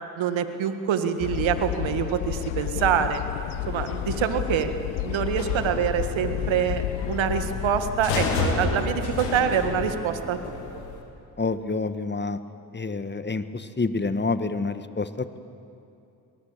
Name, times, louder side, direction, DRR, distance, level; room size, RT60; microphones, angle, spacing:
voice 1, 0.2-3.2 3.7-4.7 5.0-10.6, right 8 dB, 65° right, 8 dB, 1.8 m, -25 dB
sound 1, 1.2-9.9, left 13 dB, 70° left, 0.9 m, -31 dB
sound 2, 3.3-11.0, left 4 dB, 90° left, 2.4 m, -33 dB
voice 2, 11.4-12.4 12.7-15.4, left 3 dB, 20° left, 11 dB, 1.4 m, -28 dB
24.5 x 19.5 x 7.4 m, 2.6 s
hypercardioid pair, 50°, 50 cm